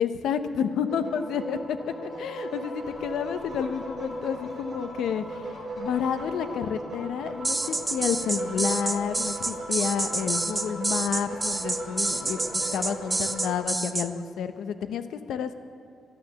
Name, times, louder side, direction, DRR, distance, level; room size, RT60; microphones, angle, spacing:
voice 1, 0.0-5.4 5.8-15.5, left 7 dB, 90° left, 9 dB, 0.8 m, -30 dB
sound 1, 0.7-13.6, right 1 dB, 45° right, 4.6 m, -37 dB
sound 2, 2.8-13.3, left 3 dB, 50° left, 1.5 m, -53 dB
sound 3, 7.4-14.1, right 2 dB, 15° right, 0.5 m, -28 dB
13.0 x 12.0 x 7.0 m, 2.4 s
wide cardioid pair, 175°, 0 cm